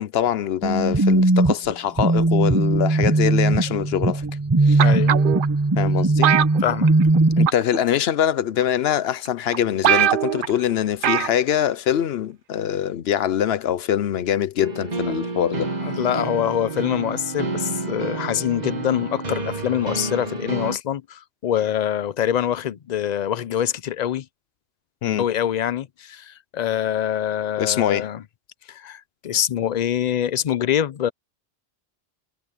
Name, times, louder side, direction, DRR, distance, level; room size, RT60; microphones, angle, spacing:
voice 1, 0.0-4.2 4.6-4.9 5.8-6.3 7.4-15.7 25.0-25.2 27.6-28.1, left 10 dB, 80° left, 0.9 m, -23 dB
sound 1, 0.6-7.5, right 2 dB, 20° right, 0.9 m, -19 dB
voice 2, 4.8-5.1 6.6-6.9 15.8-24.3 25.2-28.2 28.7-31.1, left 10 dB, 50° left, 0.6 m, -24 dB
sound 2, 4.8-5.5 6.2-7.2 7.5-7.8 8.6-8.7 9.3-9.4 9.5-9.6 9.8-10.5 11.0-11.4 11.7-11.8, right 10 dB, 60° right, 0.7 m, -20 dB
sound 3, 14.6-20.8, right 3 dB, 45° right, 1.6 m, -29 dB
omnidirectional pair, 1.1 m